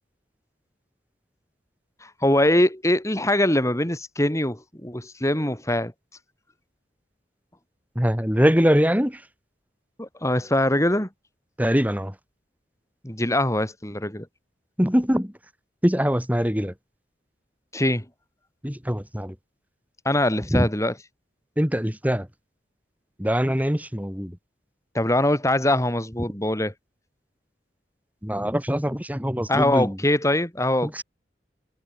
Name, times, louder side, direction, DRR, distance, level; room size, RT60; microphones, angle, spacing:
voice 1, 2.0-5.9 10.0-11.1 13.0-14.3 17.7-18.0 20.0-21.0 24.9-26.7 29.5-31.0, left 1 dB, 15° left, 6.0 m, -23 dB
voice 2, 8.0-9.2 11.6-12.1 14.8-15.3 15.8-16.7 18.6-19.3 20.5-20.7 21.6-22.3 23.2-24.3 28.2-29.9, equal, 10° right, 5.9 m, -22 dB
head